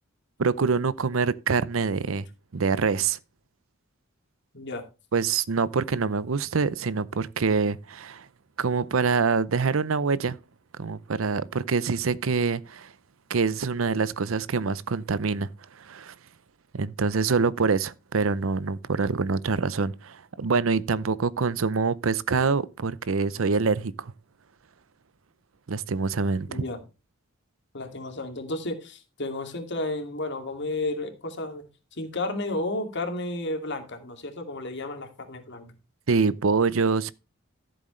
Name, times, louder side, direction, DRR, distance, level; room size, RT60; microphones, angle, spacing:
voice 1, 0.4-2.3 2.5-3.2 5.1-8.3 8.6-10.4 10.8-12.9 13.3-15.5 15.8-16.1 16.7-24.1 25.7-26.6 36.1-37.1, right 4 dB, 75° right, 0.6 m, -25 dB
voice 2, 26.5-26.8 27.7-31.7 31.9-35.7, left 2 dB, 60° left, 2.4 m, -32 dB
14.0 x 7.8 x 3.2 m
head